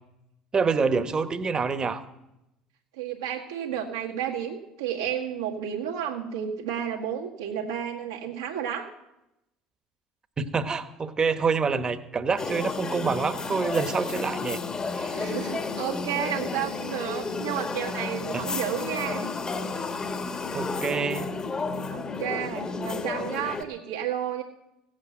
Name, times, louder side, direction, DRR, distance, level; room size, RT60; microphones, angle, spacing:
voice 1, 0.5-2.0 10.4-14.6 14.9-15.4 18.3-18.4 20.5-21.3, right 5 dB, 30° right, 10 dB, 1.3 m, -27 dB
voice 2, 3.0-8.9 15.1-19.3 21.9-24.4, right 9 dB, 85° right, -3 dB, 1.9 m, -32 dB
sound 1, 12.4-23.6, left 4 dB, 30° left, 1.6 m, -32 dB
16.5 x 8.7 x 7.8 m, 0.90 s
hypercardioid pair, 70°, 2 cm